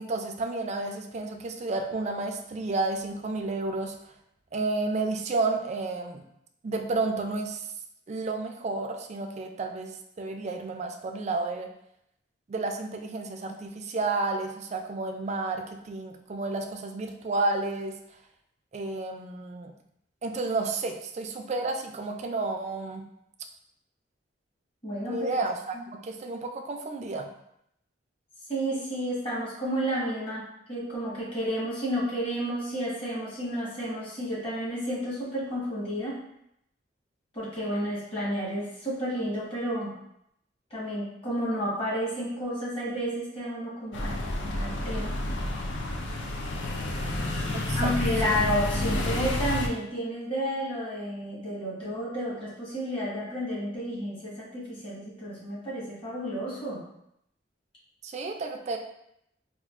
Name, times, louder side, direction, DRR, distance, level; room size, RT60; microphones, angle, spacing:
voice 1, 0.0-3.9 4.5-6.2 6.6-7.6 8.1-11.7 12.5-18.0 18.7-19.7 20.2-23.0 25.0-25.8 26.0-27.3 47.5-47.9 48.3-48.4 58.0-58.8, right 3 dB, 40° right, 4 dB, 0.4 m, -31 dB
voice 2, 24.8-25.3 25.7-25.8 28.5-36.2 37.3-39.9 40.7-44.2 44.5-45.1 47.7-56.8, equal, 30° left, -7 dB, 1.3 m, -31 dB
sound 1, 43.9-49.7, left 1 dB, 75° left, 0.5 m, -30 dB
4.5 x 2.4 x 2.4 m, 0.76 s
head